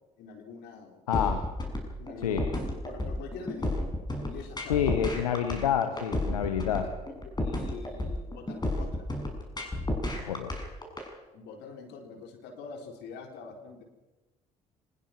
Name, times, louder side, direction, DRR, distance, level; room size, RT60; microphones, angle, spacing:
voice 1, 0.2-1.0 2.0-2.5 2.8-3.8 4.2-5.0 7.0-9.0 11.3-13.8, left 5 dB, 65° left, 3 dB, 4.2 m, -44 dB
voice 2, 1.1-1.4 2.2-2.4 4.7-6.9 10.2-10.5, left 9 dB, 85° left, 7 dB, 1.3 m, -28 dB
sound 1, 1.1-11.1, left 1 dB, 20° left, 6.9 m, -32 dB
24.0 x 20.5 x 6.0 m, 1.1 s
hypercardioid pair, 50°, 19 cm